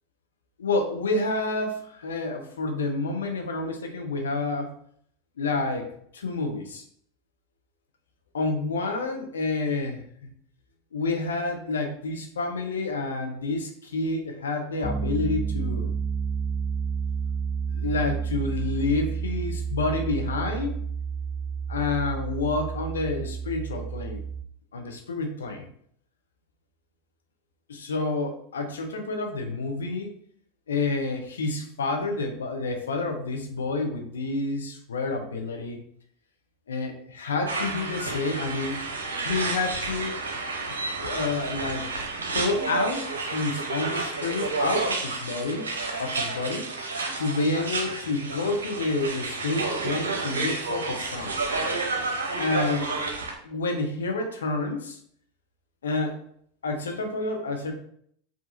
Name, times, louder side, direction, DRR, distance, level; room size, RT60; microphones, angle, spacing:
voice 1, 0.6-4.7 5.4-5.9 6.1-6.8 8.3-10.0 10.9-15.9 17.7-20.7 21.7-24.2 24.7-25.7 27.7-30.1 30.7-35.8 36.7-38.8 39.2-40.2 41.0-41.9 42.3-45.7 46.0-46.7 47.2-51.4 52.4-52.9 53.4-55.0 55.8-56.2 56.6-57.7, left 3 dB, 80° left, 4 dB, 0.7 m, -29 dB
Piano, 14.8-24.4, right 6 dB, 15° left, 0.6 m, -30 dB
sound 1, 37.5-53.3, right 3 dB, 85° right, 0.7 m, -30 dB
5.0 x 2.7 x 2.5 m, 0.63 s
hypercardioid pair, 90°, 0 cm